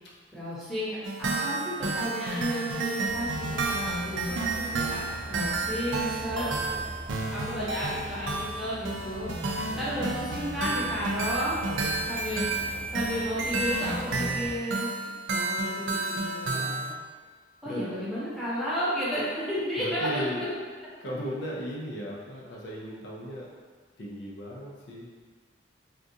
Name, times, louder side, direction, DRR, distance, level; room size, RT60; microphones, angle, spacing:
voice 1, 0.3-6.4 7.3-9.3 9.8-11.6 12.1-12.6 12.9-14.9 15.3-16.9 17.6-20.5, equal, ahead, -11 dB, 0.9 m, -33 dB
sound 1, 1.0-16.9, right 3 dB, 90° right, 0.4 m, -31 dB
sound 2, 3.0-14.5, equal, 30° right, 0.5 m, -42 dB
voice 2, 6.3-6.8 9.7-10.9 11.7-12.1 17.6-17.8 19.8-20.5 21.0-23.5 24.0-25.1, equal, 65° left, -4 dB, 0.5 m, -37 dB
3.6 x 2.4 x 2.7 m, 1.5 s
head